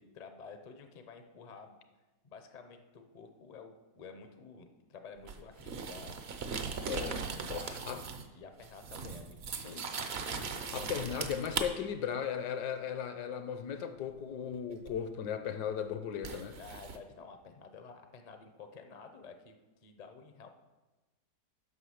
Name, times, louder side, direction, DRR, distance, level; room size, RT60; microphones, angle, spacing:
voice 1, 0.0-1.8 2.2-6.2 7.4-8.0 8.3-9.9 16.6-19.6 19.8-20.5, left 5 dB, 55° left, 0.4 m, -51 dB
sound 1, 5.3-8.3 8.6-11.7 14.9-15.0 16.2-17.0, right 5 dB, 65° right, 0.6 m, -39 dB
voice 2, 6.8-8.0 9.6-9.9 10.4-16.6, left 8 dB, 75° left, 1.2 m, -37 dB
7.8 x 5.7 x 6.4 m
omnidirectional pair, 1.9 m